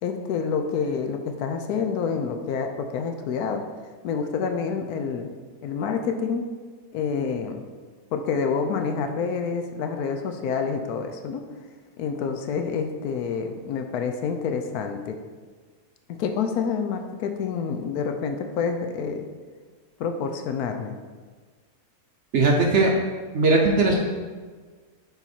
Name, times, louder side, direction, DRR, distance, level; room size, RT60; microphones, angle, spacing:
voice 1, 0.0-3.6 4.0-5.3 5.6-6.4 6.9-7.6 8.1-11.4 12.0-15.2 16.1-19.2 20.0-21.0, left 6 dB, 75° left, 6 dB, 1.1 m, -28 dB
voice 2, 22.3-22.9 23.3-23.9, right 3 dB, 60° right, 0 dB, 0.8 m, -19 dB
7.0 x 4.0 x 4.3 m, 1.5 s
omnidirectional pair, 1.7 m